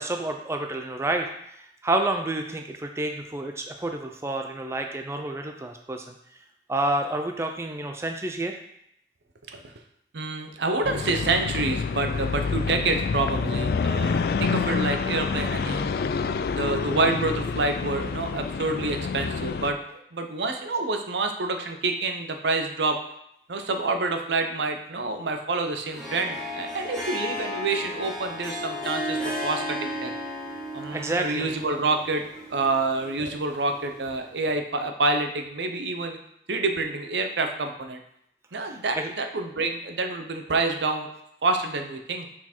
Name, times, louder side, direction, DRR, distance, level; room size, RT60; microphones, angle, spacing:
voice 1, 0.0-6.0 6.7-8.6 30.9-31.6 38.6-39.1, right 2 dB, 15° right, 4 dB, 0.4 m, -29 dB
voice 2, 10.1-15.9 16.5-23.0 23.5-30.1 30.7-36.2 36.5-38.0 38.5-41.1 41.4-42.3, right 3 dB, 75° right, 5 dB, 0.7 m, -27 dB
sound 1, 10.8-19.7, left 5 dB, 60° left, 0.3 m, -27 dB
Harp, 25.9-34.1, left 1 dB, ahead, 1.9 m, -34 dB
5.9 x 4.6 x 4.4 m, 0.75 s
head